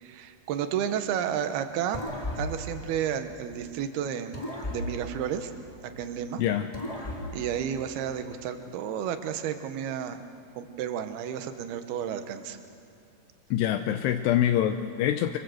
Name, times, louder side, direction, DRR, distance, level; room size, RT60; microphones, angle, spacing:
voice 1, 0.0-2.0 2.4-4.4 4.7-5.5 5.8-6.4 7.3-10.2 10.6-12.6, right 9 dB, 75° right, 8 dB, 3.0 m, -32 dB
sound 1, 1.9-3.8 4.3-6.2 6.7-8.4, left 1 dB, 15° left, 1.4 m, -37 dB
voice 2, 6.4-6.7 13.5-15.4, left 11 dB, 85° left, 6 dB, 2.9 m, -25 dB
26.5 x 24.5 x 7.9 m, 2.5 s
omnidirectional pair, 4.7 m